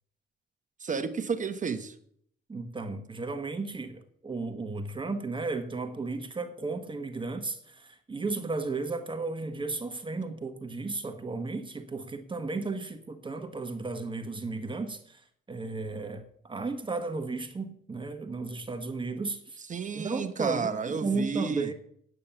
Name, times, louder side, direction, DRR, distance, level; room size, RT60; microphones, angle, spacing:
voice 1, 0.8-1.9 19.7-21.7, right 5 dB, 40° right, 1.0 m, -31 dB
voice 2, 2.5-19.6 19.9-21.7, right 3 dB, 25° right, 1.3 m, -34 dB
8.8 x 8.5 x 7.0 m
cardioid pair, 90°, 20 cm